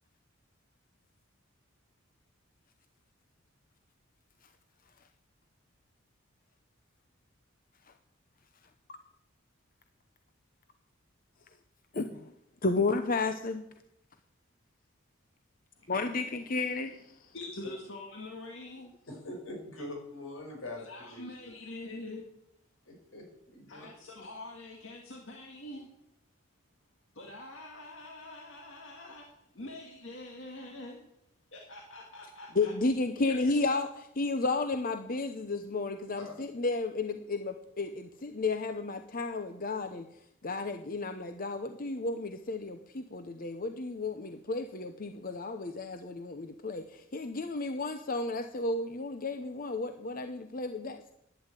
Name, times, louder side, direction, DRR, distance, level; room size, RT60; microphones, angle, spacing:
voice 1, 11.9-12.3 12.6-13.7 15.9-17.0 32.6-33.9 34.2-40.1 40.4-51.1, left 3 dB, 45° left, 0.8 m, -32 dB
voice 2, 17.3-18.9 20.9-22.2 23.7-25.9 27.1-31.0 31.5-32.7 33.2-33.8, left 2 dB, 65° left, 2.1 m, -45 dB
voice 3, 19.1-20.8 21.1-21.2 22.9-23.2 23.5-23.9 36.2-36.3, left 2 dB, 85° left, 5.2 m, -42 dB
11.5 x 9.9 x 8.3 m
head